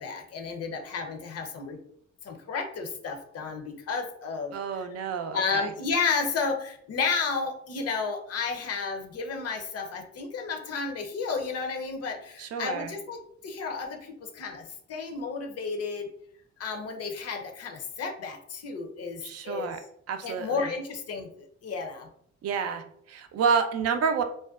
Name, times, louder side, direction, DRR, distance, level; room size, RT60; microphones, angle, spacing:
voice 1, 0.0-1.8 2.2-4.8 5.3-16.1 16.6-19.8 20.2-21.3 21.6-22.1, left 5 dB, 55° left, 4 dB, 0.6 m, -32 dB
voice 2, 4.5-5.7 12.4-12.9 19.2-19.8 20.1-20.7 22.4-24.2, right 6 dB, 55° right, 8 dB, 0.4 m, -29 dB
2.5 x 2.1 x 2.3 m, 0.68 s
cardioid pair, 90°, 30 cm